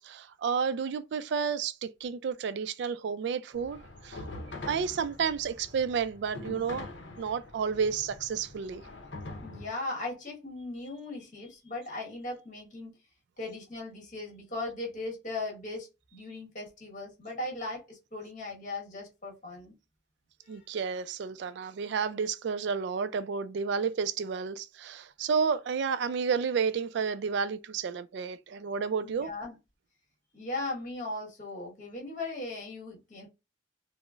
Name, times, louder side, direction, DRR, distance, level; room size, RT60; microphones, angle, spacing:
voice 1, 0.0-4.2 4.7-6.9 7.2-8.8 20.5-29.3, right 6 dB, 65° right, 0.3 m, -31 dB
sound 1, 3.5-9.7, left 2 dB, 70° left, 0.7 m, -44 dB
voice 2, 9.4-12.9 13.4-19.7 20.4-20.6 29.0-29.6 30.3-33.3, left 2 dB, 45° left, 1.3 m, -38 dB
3.8 x 2.0 x 2.3 m
head